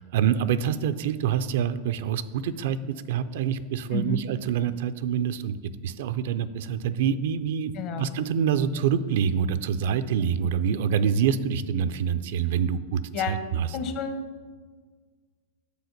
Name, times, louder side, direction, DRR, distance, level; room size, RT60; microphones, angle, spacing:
voice 1, 0.0-5.6 5.8-13.7, right 8 dB, 70° right, 12 dB, 0.4 m, -26 dB
voice 2, 7.7-8.1 13.1-13.4 13.7-14.3, left 5 dB, 50° left, 8 dB, 0.8 m, -30 dB
6.9 x 3.9 x 6.5 m, 1.5 s
supercardioid pair, 125°, 0 cm